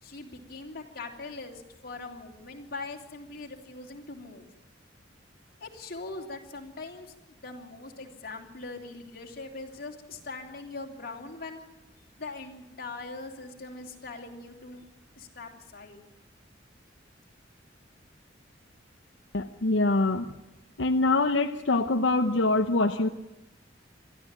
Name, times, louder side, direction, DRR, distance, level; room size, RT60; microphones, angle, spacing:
voice 1, 0.0-4.4 5.6-11.6 12.2-14.8 15.2-16.0, left 3 dB, 55° left, 1 dB, 3.2 m, -41 dB
voice 2, 19.3-20.3 20.8-23.1, left 2 dB, 85° left, 6 dB, 0.9 m, -24 dB
23.5 x 14.0 x 9.0 m, 0.97 s
head